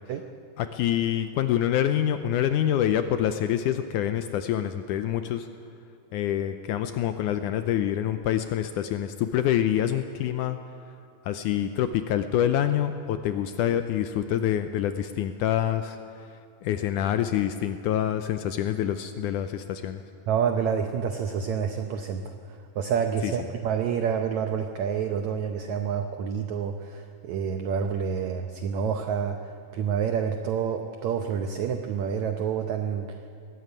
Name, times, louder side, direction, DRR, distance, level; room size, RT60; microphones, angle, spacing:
voice 1, 0.6-5.5 6.1-10.6 11.2-16.3 16.6-20.0 23.2-23.3, left 10 dB, 80° left, 9 dB, 1.8 m, -26 dB
voice 2, 20.3-33.2, right 7 dB, 75° right, 6 dB, 1.7 m, -28 dB
20.0 x 14.5 x 9.5 m, 2.6 s
omnidirectional pair, 4.2 m